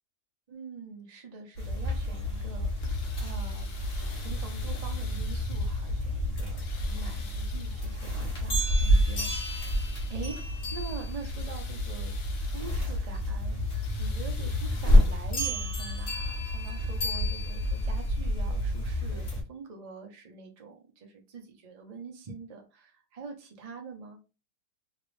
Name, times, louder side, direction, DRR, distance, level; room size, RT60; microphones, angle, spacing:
voice 1, 0.5-9.8 10.1-13.6 14.0-24.2, right 4 dB, 55° right, 2 dB, 0.4 m, -45 dB
sound 1, 1.6-19.4, left 1 dB, 45° left, 1.0 m, -29 dB
sound 2, 2.6-6.1 6.5-8.1 8.5-10.5 10.9-13.0 13.5-15.6 16.7-16.8 17.4-17.5, left 5 dB, 75° left, 1.3 m, -50 dB
2.9 x 2.5 x 3.1 m, 0.30 s
omnidirectional pair, 1.8 m